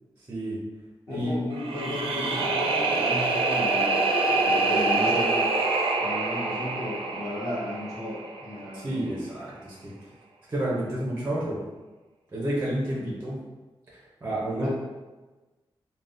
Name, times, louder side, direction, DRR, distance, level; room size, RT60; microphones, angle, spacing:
voice 1, 0.2-0.6 1.1-1.4 8.7-9.9 10.5-11.6 12.3-13.4 13.9-14.7, right 1 dB, 25° right, -6 dB, 0.5 m, -30 dB
voice 2, 1.1-3.9 4.3-5.5 6.0-8.9 12.9-13.1 14.5-14.7, left 1 dB, 35° left, -11 dB, 1.1 m, -34 dB
sound 1, 1.5-8.6, right 3 dB, 85° right, 0.4 m, -26 dB
3.4 x 2.1 x 2.5 m, 1.2 s
wide cardioid pair, 175°, 9 cm